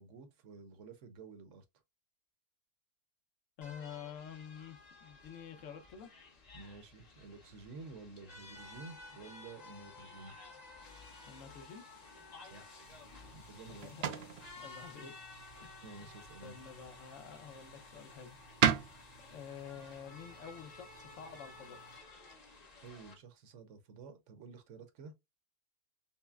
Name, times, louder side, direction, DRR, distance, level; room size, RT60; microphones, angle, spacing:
voice 1, 0.0-1.6 6.5-10.4 12.4-12.8 13.3-14.0 15.8-16.5 22.8-25.1, right 4 dB, 60° right, 1.0 m, -51 dB
voice 2, 3.6-6.1 11.3-11.8 13.7-14.2 14.6-15.1 15.6-16.1 16.4-18.4 18.8-18.9 19.2-21.8, left 7 dB, 60° left, 1.0 m, -49 dB
sound 1, 3.6-23.1, left 3 dB, 35° left, 0.8 m, -55 dB
sound 2, 8.5-22.0, left 6 dB, 85° left, 2.0 m, -61 dB
sound 3, 12.8-22.0, right 9 dB, 90° right, 0.5 m, -39 dB
5.6 x 2.1 x 2.3 m
omnidirectional pair, 1.6 m